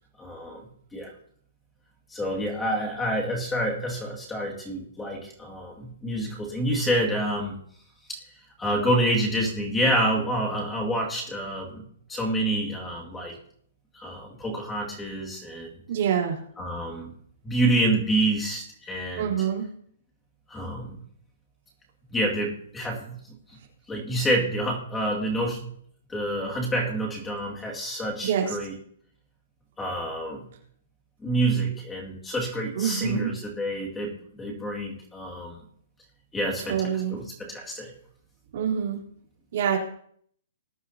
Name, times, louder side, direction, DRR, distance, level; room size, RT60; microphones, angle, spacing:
voice 1, 0.2-0.6 0.9-1.1 2.1-7.6 8.6-11.8 12.1-13.3 13.9-15.7 16.6-17.1 17.4-19.5 20.5-21.0 22.1-23.2 23.9-25.6 26.1-28.8 29.8-30.5 31.2-35.6 36.3-37.9, right 1 dB, 10° left, -1 dB, 2.1 m, -28 dB
voice 2, 15.9-16.4 19.2-19.6 28.2-28.6 32.7-33.3 36.7-37.2 38.5-39.0 39.5-39.8, right 8 dB, 50° right, -2 dB, 3.6 m, -26 dB
20.5 x 9.9 x 2.8 m, 0.62 s
hypercardioid pair, 170°, 0 cm